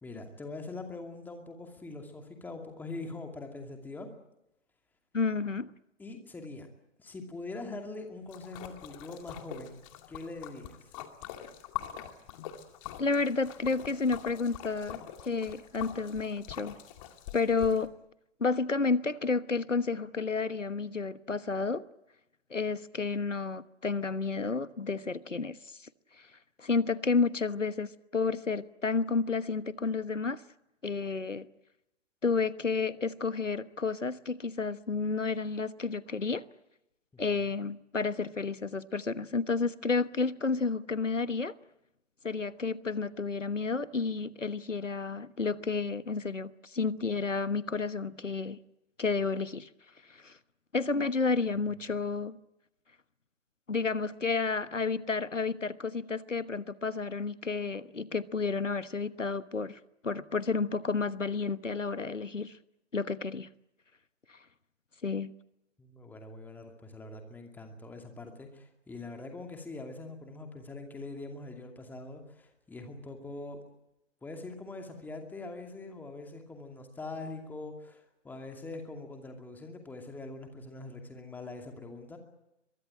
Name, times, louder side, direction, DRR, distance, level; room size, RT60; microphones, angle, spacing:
voice 1, 0.0-4.1 6.0-6.7 7.0-9.8 10.1-10.9 37.1-37.6 65.8-73.6 74.2-82.2, left 2 dB, 5° left, 2.5 m, -43 dB
voice 2, 5.1-5.7 13.0-16.8 17.3-17.9 18.4-21.8 22.5-25.6 26.6-30.4 30.8-31.5 32.2-36.4 37.2-41.6 42.2-48.6 49.0-49.7 50.2-50.3 50.7-52.4 53.7-62.5 62.9-63.5 65.0-65.3, left 4 dB, 85° left, 1.2 m, -31 dB
Splash splatter, 8.3-17.8, left 12 dB, 25° left, 2.4 m, -44 dB
23.0 x 22.5 x 9.0 m
figure-of-eight pair, 130°, 36 cm